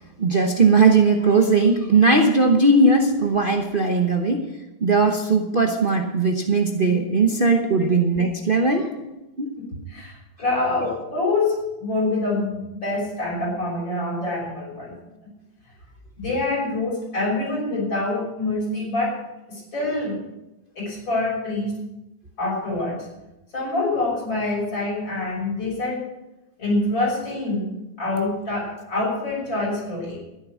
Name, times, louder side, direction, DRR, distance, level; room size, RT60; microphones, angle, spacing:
voice 1, 0.2-4.4 4.8-8.9 9.4-9.5 10.8-10.9, right 3 dB, 35° right, 2 dB, 1.0 m, -18 dB
voice 2, 9.6-11.5 11.8-14.9 16.2-19.1 19.5-20.2 20.8-21.8 22.4-23.0 23.5-26.0 26.6-27.7 28.0-30.2, left 2 dB, 70° left, -4 dB, 7.2 m, -26 dB
12.5 x 11.0 x 6.3 m, 0.96 s
omnidirectional pair, 2.1 m